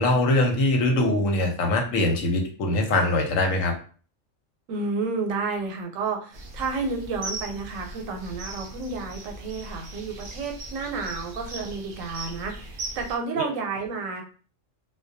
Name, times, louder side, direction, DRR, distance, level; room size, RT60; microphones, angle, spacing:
voice 1, 0.0-3.7 13.4-13.5, left 2 dB, 90° left, 2 dB, 1.0 m, -22 dB
voice 2, 4.7-14.2, right 4 dB, 90° right, 4 dB, 1.0 m, -31 dB
sound 1, 6.3-13.2, right 2 dB, 65° right, 0.5 m, -39 dB
2.2 x 2.1 x 2.6 m, 0.40 s
omnidirectional pair, 1.3 m